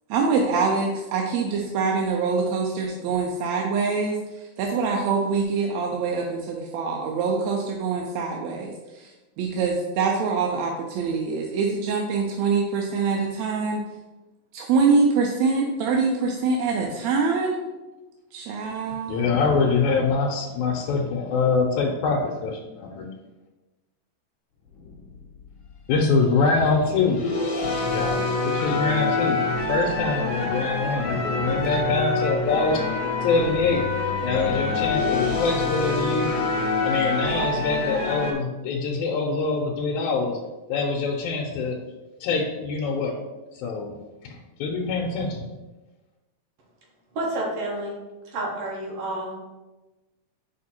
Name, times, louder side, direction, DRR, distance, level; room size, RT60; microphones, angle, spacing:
voice 1, 0.1-13.8 14.5-17.6 18.3-19.2, right 4 dB, 80° right, 0 dB, 1.8 m, -24 dB
voice 2, 19.1-23.1 25.9-27.3 27.8-32.8 33.2-33.8 34.2-36.3 36.8-40.4 40.7-41.8 42.2-43.1 43.5-43.9 44.2-45.5, left 4 dB, 85° left, 0 dB, 2.1 m, -24 dB
sound 1, 24.8-26.0 26.8-38.3, left 3 dB, 55° left, 1.5 m, -26 dB
voice 3, 47.1-48.0 48.3-49.4, right 1 dB, 60° right, -2 dB, 2.1 m, -29 dB
5.1 x 4.6 x 4.2 m, 1.1 s
omnidirectional pair, 3.3 m